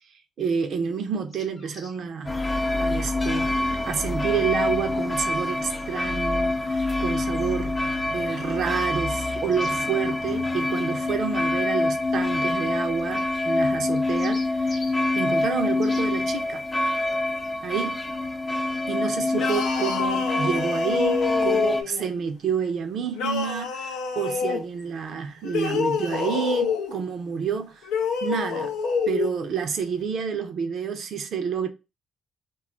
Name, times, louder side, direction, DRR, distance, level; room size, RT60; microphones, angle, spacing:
voice 1, 0.4-7.8 8.1-14.8 15.2-16.6 17.6-18.0 18.9-27.8 28.2-28.7 29.1-31.7, right 6 dB, 65° right, 0.5 m, -29 dB
sound 1, 1.1-2.0 5.2-5.3 9.5-9.8 11.0-11.3 13.2-13.3 13.9-15.0 15.8-16.1, left 3 dB, 40° left, 0.9 m, -44 dB
sound 2, 2.3-21.8, left 2 dB, 25° left, 0.5 m, -26 dB
sound 3, 19.3-22.1 23.1-24.6 25.4-27.0 27.8-29.3, left 5 dB, 90° left, 0.5 m, -27 dB
2.3 x 2.0 x 3.6 m
cardioid pair, 90°, 0 cm